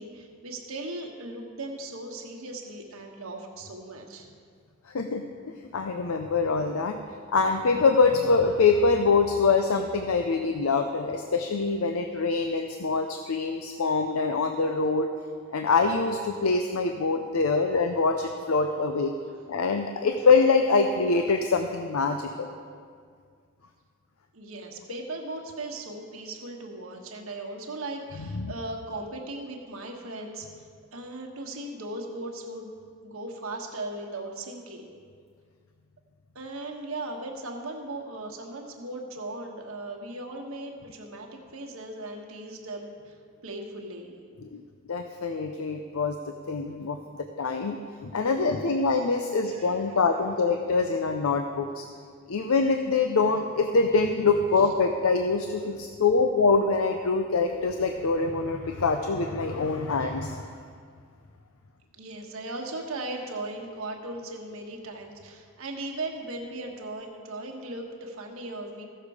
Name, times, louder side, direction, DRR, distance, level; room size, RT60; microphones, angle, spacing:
voice 1, 0.0-4.3 24.3-30.5 30.9-32.7 33.0-34.9 36.3-43.2 43.4-44.2 49.5-49.8 54.6-54.7 61.9-68.8, right 2 dB, 85° right, 1 dB, 1.3 m, -38 dB
voice 2, 5.7-7.0 7.3-15.1 15.5-19.1 19.5-22.5 28.3-28.5 44.4-44.6 44.9-46.2 46.5-51.9 52.3-60.5, left 4 dB, 90° left, 6 dB, 0.6 m, -24 dB
15.0 x 6.7 x 4.9 m, 2.1 s
head